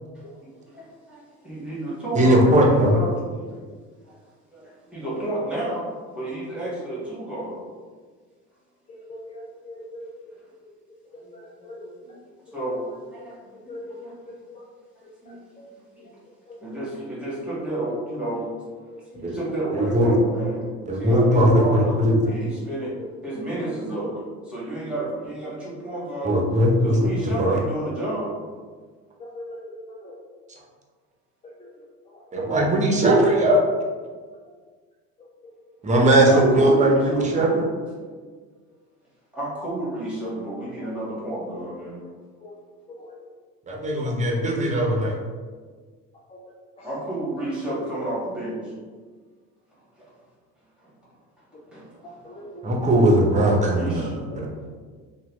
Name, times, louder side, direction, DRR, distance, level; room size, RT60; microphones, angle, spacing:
voice 1, 0.1-3.6 4.0-4.2 4.5-7.6 11.2-11.3 11.6-12.2 12.5-12.8 13.1-14.1 15.2-16.1 16.6-18.6 19.1-23.0 23.2-26.4 26.8-28.3 36.2-37.8 38.1-38.3 39.3-42.0 46.8-48.7 50.0-50.1 51.7-51.9 52.7-52.8 53.7-54.1, right 1 dB, 5° right, -8 dB, 1.4 m, -31 dB
voice 2, 2.1-3.0 19.2-19.3 19.7-20.1 20.9-22.2 26.2-27.1 27.4-27.6 32.3-33.6 35.8-37.7 43.7-45.1 52.6-54.5, right 1 dB, 25° right, -1 dB, 0.6 m, -19 dB
voice 3, 8.9-10.1 10.6-12.2 12.5-12.6 13.5-14.0 14.3-14.6 15.3-15.7 16.5-16.6 22.2-22.3 23.0-23.1 25.9-26.1 29.2-30.2 31.4-32.2 35.2-35.3 36.2-36.3 40.8-41.0 42.3-42.5 43.0-43.2 44.0-44.1 46.3-46.4 46.8-46.9 52.0-52.6 54.3-54.7, left 1 dB, 20° left, -4 dB, 0.4 m, -42 dB
2.9 x 2.2 x 3.0 m, 1.5 s
supercardioid pair, 100°, 31 cm